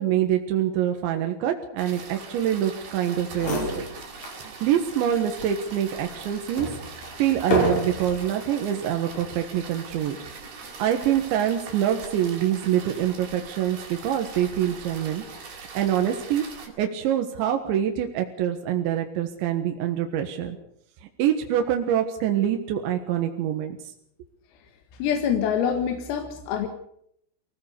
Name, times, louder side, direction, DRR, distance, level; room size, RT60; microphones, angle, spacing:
voice 1, 0.0-3.8 4.4-6.7 7.2-10.2 10.8-15.2 15.8-16.4 16.8-20.6 21.2-23.9, right 10 dB, 70° right, 4 dB, 3.5 m, -25 dB
sound 1, 1.8-16.7, right 5 dB, 50° right, 5.7 m, -42 dB
sound 2, 3.0-3.1 3.3-4.4 4.9-5.0 5.7-8.3 9.0-9.4, left 1 dB, 45° left, 7.1 m, -29 dB
voice 2, 25.0-26.7, left 8 dB, 80° left, 4 dB, 4.7 m, -25 dB
24.5 x 17.5 x 6.9 m, 0.72 s
omnidirectional pair, 6.0 m